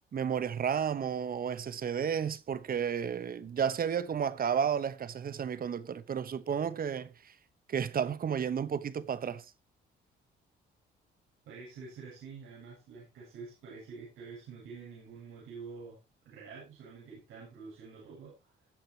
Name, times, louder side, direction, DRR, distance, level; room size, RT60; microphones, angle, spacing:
voice 1, 0.1-7.3 7.7-9.4, right 7 dB, 45° right, 1.1 m, -32 dB
voice 2, 11.5-18.5, right 5 dB, 90° right, 7.5 m, -47 dB
20.0 x 7.8 x 3.0 m
cardioid pair, 90°, 20 cm